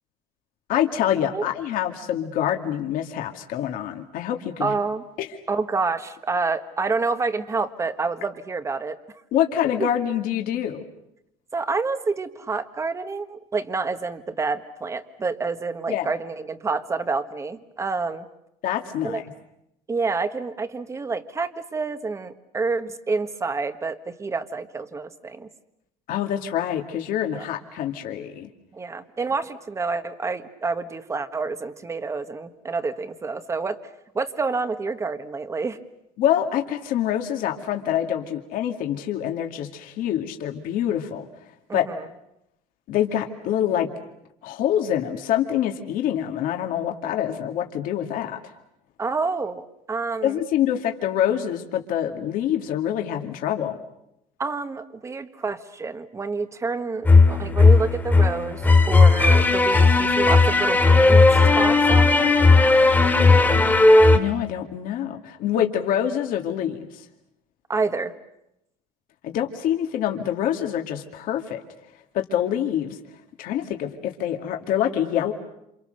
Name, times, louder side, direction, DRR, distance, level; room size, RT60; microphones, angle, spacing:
voice 1, 0.7-4.7 5.2-5.3 9.3-10.8 15.9-16.1 18.6-19.2 26.1-28.5 36.2-41.3 41.7-41.9 42.9-43.9 44.4-48.5 50.2-53.8 64.1-67.1 69.2-71.6 72.1-73.0 73.4-75.3, left 10 dB, 65° left, 4 dB, 2.3 m, -25 dB
voice 2, 4.6-5.0 5.5-9.0 9.8-9.9 11.5-18.3 19.0-19.2 19.9-25.5 27.3-27.4 28.7-33.8 34.1-35.8 41.7-42.1 49.0-50.4 54.4-62.3 67.7-68.1, right 4 dB, 20° right, 10 dB, 1.4 m, -28 dB
sound 1, 57.0-64.2, left 3 dB, 10° left, 2.4 m, -15 dB
28.5 x 28.0 x 6.7 m, 0.82 s
cardioid pair, 145°, 16 cm